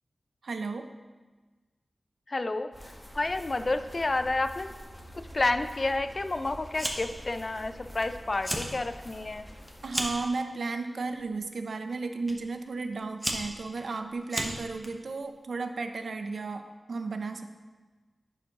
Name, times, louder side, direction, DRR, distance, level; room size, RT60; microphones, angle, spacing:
voice 1, 0.4-0.9 9.8-17.5, right 3 dB, 80° right, 7 dB, 0.4 m, -34 dB
voice 2, 2.3-2.7 3.1-4.7 5.3-9.5, left 2 dB, 45° left, 10 dB, 0.4 m, -30 dB
sound 1, 2.7-10.0, equal, 20° left, 1.2 m, -47 dB
Fire, 6.7-7.2 7.6-8.0 8.3-8.7 9.1-10.3 11.1-11.4 12.3-12.4 12.9-14.9, equal, 5° right, 0.9 m, -33 dB
10.5 x 5.1 x 2.8 m, 1.3 s
wide cardioid pair, 65°, 0 cm